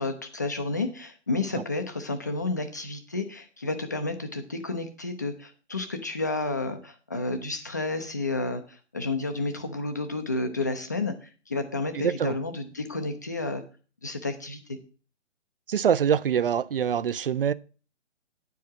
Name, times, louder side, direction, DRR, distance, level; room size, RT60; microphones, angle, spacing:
voice 1, 0.0-8.6 8.9-13.6 14.0-14.8, left 3 dB, 15° left, 0.4 m, -31 dB
voice 2, 11.9-12.4 15.7-17.5, right 8 dB, 50° right, 0.4 m, -24 dB
9.7 x 4.7 x 6.0 m
figure-of-eight pair, 135°, 37 cm